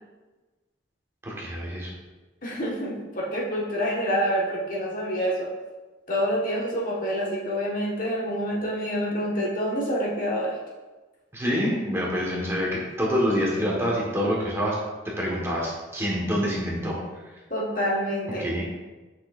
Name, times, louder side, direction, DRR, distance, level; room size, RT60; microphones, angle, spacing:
voice 1, 1.2-1.9 11.3-14.7 15.2-17.0 18.4-18.6, equal, 15° right, -4 dB, 1.3 m, -26 dB
voice 2, 2.4-5.5 6.1-10.5 17.5-18.4, equal, 45° left, -4 dB, 1.5 m, -27 dB
9.6 x 6.1 x 2.5 m, 1.2 s
head